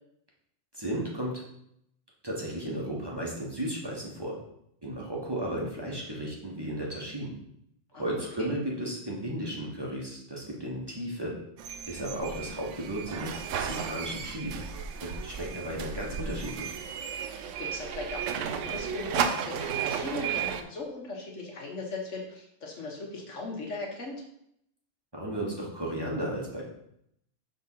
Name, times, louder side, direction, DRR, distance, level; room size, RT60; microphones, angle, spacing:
voice 1, 0.7-1.4 2.2-4.4 4.8-7.3 7.9-11.3 11.9-13.3 13.6-14.6 15.0-16.7 25.1-26.6, right 1 dB, 20° right, -3 dB, 1.5 m, -34 dB
voice 2, 7.9-8.5 17.4-24.2, left 3 dB, 80° left, 0 dB, 1.8 m, -39 dB
sound 1, 11.6-20.6, right 7 dB, 80° right, 1.0 m, -34 dB
6.4 x 3.9 x 5.7 m, 0.74 s
omnidirectional pair, 1.2 m